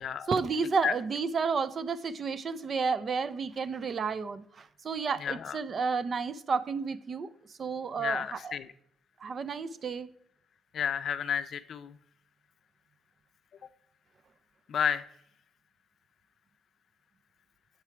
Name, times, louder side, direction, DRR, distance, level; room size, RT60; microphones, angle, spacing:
voice 1, 0.3-7.3 7.6-8.6 9.2-10.1, right 5 dB, 45° right, 0.4 m, -31 dB
voice 2, 5.2-5.6 8.0-8.7 10.7-12.0 14.7-15.0, left 8 dB, 60° left, 0.5 m, -31 dB
8.0 x 4.7 x 4.4 m
cardioid pair, 100°, 0 cm